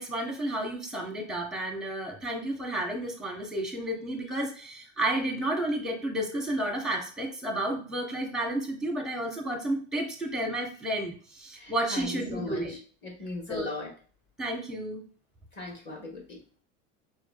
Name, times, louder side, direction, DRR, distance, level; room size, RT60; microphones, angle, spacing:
voice 1, 0.0-12.8 13.5-13.7 14.4-15.0, right 1 dB, ahead, 2 dB, 0.8 m, -31 dB
voice 2, 11.6-13.9 15.5-16.4, left 2 dB, 30° left, -1 dB, 1.4 m, -38 dB
4.5 x 2.3 x 2.3 m, 0.41 s
hypercardioid pair, 100°, 38 cm